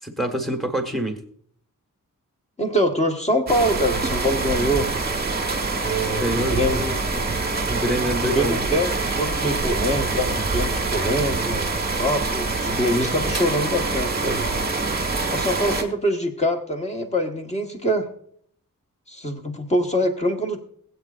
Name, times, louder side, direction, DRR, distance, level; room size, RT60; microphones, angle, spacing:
voice 1, 0.0-1.2 6.1-7.2 7.7-8.7, equal, ahead, 4 dB, 1.4 m, -26 dB
voice 2, 2.6-4.9 5.8-6.8 8.2-14.5 15.3-18.1 19.1-20.6, equal, 20° left, 3 dB, 1.3 m, -24 dB
sound 1, 3.5-15.8, right 3 dB, 25° right, 1.3 m, -25 dB
21.0 x 8.2 x 2.5 m, 0.62 s
wide cardioid pair, 180°, 34 cm